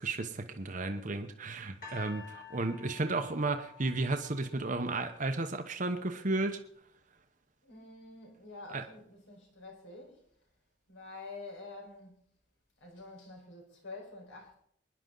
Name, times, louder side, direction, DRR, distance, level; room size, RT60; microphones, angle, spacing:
voice 1, 0.0-6.6 8.7-8.8, right 2 dB, 40° right, 1.0 m, -33 dB
sound 1, 1.8-5.0 5.8-5.9, left 6 dB, 45° left, 3.8 m, -50 dB
voice 2, 7.6-10.2 10.9-12.2 12.8-14.5, left 3 dB, 80° left, 4.6 m, -48 dB
24.0 x 10.5 x 3.9 m
head